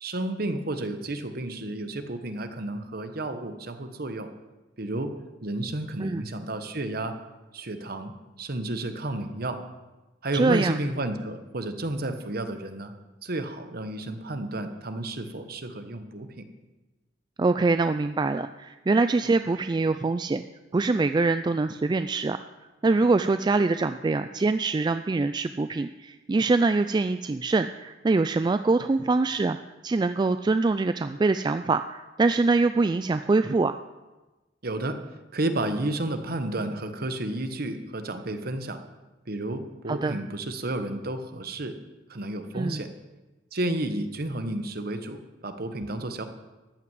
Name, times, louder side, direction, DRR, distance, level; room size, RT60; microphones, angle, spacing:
voice 1, 0.0-4.3 4.8-5.1 5.4-7.1 7.5-8.1 8.4-9.6 10.2-12.9 13.2-16.5 34.6-35.0 35.3-38.8 39.3-41.8 42.1-42.9 43.5-46.2, right 1 dB, 55° right, 8 dB, 1.2 m, -31 dB
voice 2, 10.3-10.8 17.4-20.4 20.7-22.4 22.8-29.6 29.8-33.8 39.9-40.2 42.5-42.8, right 3 dB, 25° right, 10 dB, 0.3 m, -24 dB
14.0 x 5.9 x 9.3 m, 1.1 s
head